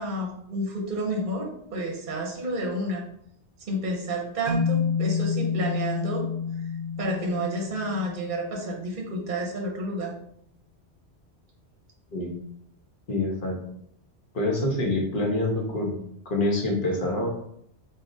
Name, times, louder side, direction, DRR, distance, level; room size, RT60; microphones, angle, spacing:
voice 1, 0.0-3.1 3.7-6.3 7.0-10.2, right 1 dB, 50° right, 0 dB, 0.8 m, -30 dB
sound 1, 4.5-8.8, left 6 dB, 85° right, 0.9 m, -29 dB
voice 2, 13.1-13.6 14.3-16.0 16.2-17.3, left 2 dB, 50° left, -1 dB, 1.1 m, -26 dB
3.8 x 3.5 x 2.6 m, 0.70 s
omnidirectional pair, 1.2 m